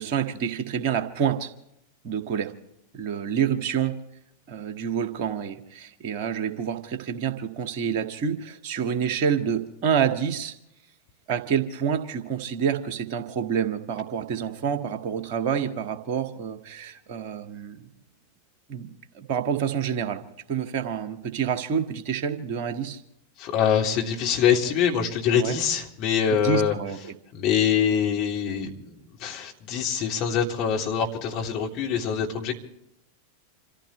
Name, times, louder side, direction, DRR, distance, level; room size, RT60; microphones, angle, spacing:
voice 1, 0.0-1.5 2.0-2.5 2.9-3.9 4.5-10.5 11.3-17.9 18.7-20.2 20.5-23.0 25.3-25.6 26.3-27.1, right 7 dB, 45° right, 6 dB, 1.8 m, -28 dB
voice 2, 23.4-26.7 27.3-32.5, left 8 dB, 40° left, 0 dB, 3.3 m, -24 dB
28.0 x 15.0 x 3.3 m, 0.77 s
figure-of-eight pair, 90°, 0 cm